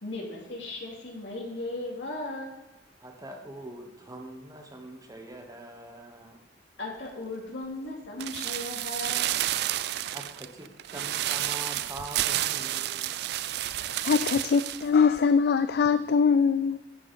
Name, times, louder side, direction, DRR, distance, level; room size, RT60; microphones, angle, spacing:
voice 1, 0.0-2.6 6.8-9.3, left 2 dB, 80° left, -2 dB, 2.5 m, -36 dB
voice 2, 3.0-6.4 10.1-13.2, right 1 dB, 20° right, 3 dB, 1.2 m, -43 dB
sound 1, 8.2-14.9 15.2-15.3, right 13 dB, 65° right, 0.3 m, -30 dB
voice 3, 13.8-16.8, left 5 dB, 60° left, 12 dB, 0.3 m, -23 dB
11.0 x 6.4 x 4.2 m, 1.1 s
head